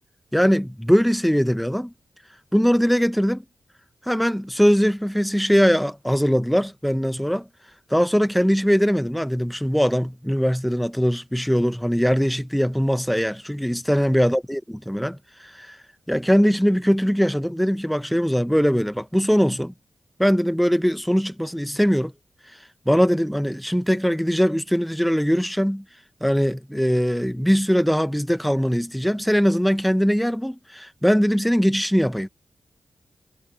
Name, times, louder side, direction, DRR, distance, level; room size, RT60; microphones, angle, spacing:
voice 1, 0.3-1.9 2.5-3.4 4.1-7.4 7.9-15.8 16.1-19.7 20.2-22.1 22.9-25.8 26.2-32.3, equal, ahead, 0.9 m, -21 dB
cardioid pair, 65°, 0 cm